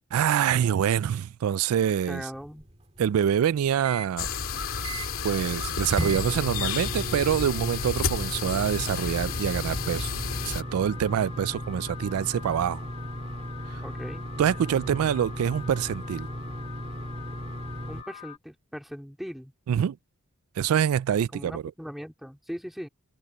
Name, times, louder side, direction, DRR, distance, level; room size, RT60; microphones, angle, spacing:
voice 1, 0.1-2.3 3.0-4.3 5.2-10.1 10.4-12.8 13.7-13.8 14.4-16.3 19.7-20.0 20.6-21.6, right 9 dB, 75° right, 0.3 m, -25 dB
voice 2, 2.1-2.7 13.8-14.3 17.9-19.5 21.3-22.9, equal, ahead, 3.7 m, -39 dB
sound 1, 2.3-4.1 4.5-4.6 4.8-5.3 6.0-18.0, right 1 dB, 30° right, 2.1 m, -36 dB
sound 2, 4.2-10.6, left 5 dB, 65° left, 2.4 m, -31 dB
Alarm, 4.3-18.4, left 9 dB, 25° left, 1.8 m, -45 dB
head